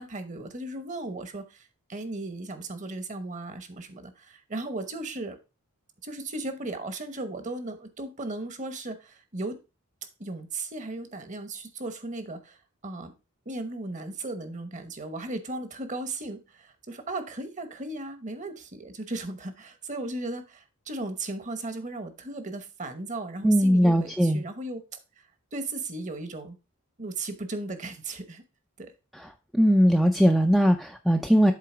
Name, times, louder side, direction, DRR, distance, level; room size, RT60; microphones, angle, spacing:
voice 1, 0.0-5.4 6.0-9.6 10.2-12.6 12.8-13.1 13.4-24.8 25.2-25.3 25.5-26.6 27.0-28.4 28.8-28.9, right 2 dB, 35° right, 10 dB, 1.0 m, -36 dB
voice 2, 23.4-24.4 29.5-31.5, equal, ahead, 4 dB, 0.4 m, -20 dB
7.5 x 3.9 x 5.0 m, 0.29 s
head